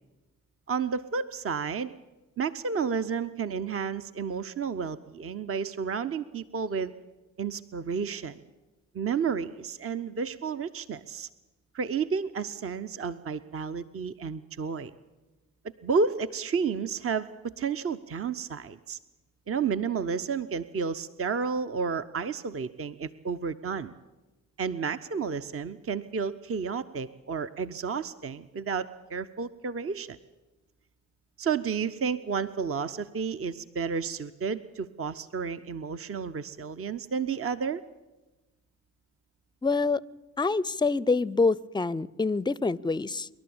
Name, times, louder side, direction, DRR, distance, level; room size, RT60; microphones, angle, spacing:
voice 1, 0.7-1.9 2.4-6.9 7.4-8.4 8.9-11.3 11.7-14.9 15.8-19.0 19.5-24.0 24.6-30.2 31.4-37.8, right 5 dB, 40° right, 11 dB, 0.8 m, -31 dB
voice 2, 39.6-40.0 40.4-43.3, left 3 dB, 15° left, 23 dB, 0.6 m, -26 dB
26.0 x 12.0 x 8.8 m, 1.1 s
hypercardioid pair, 40°, 34 cm